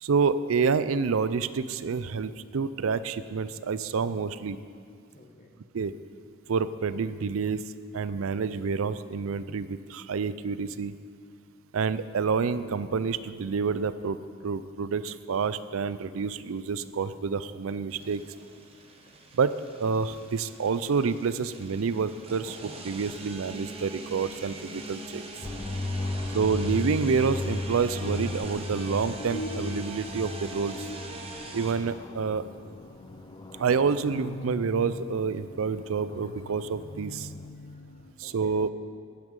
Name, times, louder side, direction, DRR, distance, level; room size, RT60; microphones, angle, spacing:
voice 1, 0.0-4.6 5.7-5.9 6.5-10.9 11.7-18.2 19.3-25.5 26.3-30.9 31.5-32.4 33.6-37.3 38.2-38.7, right 5 dB, 85° right, 14 dB, 0.4 m, -28 dB
voice 2, 5.1-5.6 25.8-26.4 37.5-38.5, left 2 dB, 35° left, 1 dB, 1.2 m, -55 dB
sound 1, 17.9-31.7, right 2 dB, 30° right, 1.0 m, -43 dB
sound 2, 21.3-38.1, left 2 dB, 65° left, 0.6 m, -45 dB
sound 3, 25.4-37.5, left 2 dB, 20° left, 0.3 m, -37 dB
12.0 x 9.4 x 5.4 m, 2.2 s
head